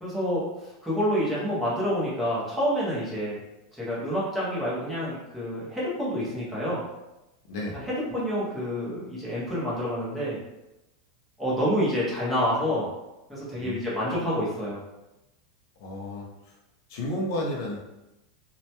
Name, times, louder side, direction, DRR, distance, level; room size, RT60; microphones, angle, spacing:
voice 1, 0.0-3.4 3.7-6.8 7.8-10.4 11.4-12.9 13.3-14.8, equal, ahead, -9 dB, 0.6 m, -28 dB
voice 2, 7.5-7.9 13.6-13.9 15.8-16.6 16.9-17.8, left 1 dB, 50° left, -2 dB, 0.4 m, -32 dB
2.1 x 2.1 x 2.8 m, 0.97 s
supercardioid pair, 180°, 2 cm